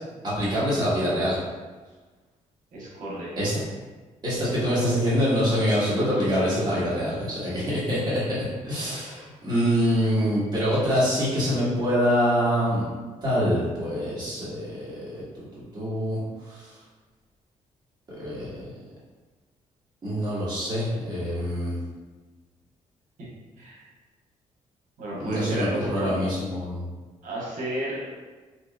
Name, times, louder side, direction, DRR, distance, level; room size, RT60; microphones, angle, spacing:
voice 1, 0.2-1.4 3.4-3.5 4.2-12.8 13.2-16.8 18.1-18.7 20.0-21.8 25.2-26.9, equal, 30° right, -9 dB, 1.5 m, -25 dB
voice 2, 2.7-3.5 23.6-23.8 25.0-26.3 27.2-28.0, right 1 dB, 75° right, -5 dB, 1.1 m, -32 dB
2.9 x 2.8 x 2.3 m, 1.3 s
cardioid pair, 95°, 14 cm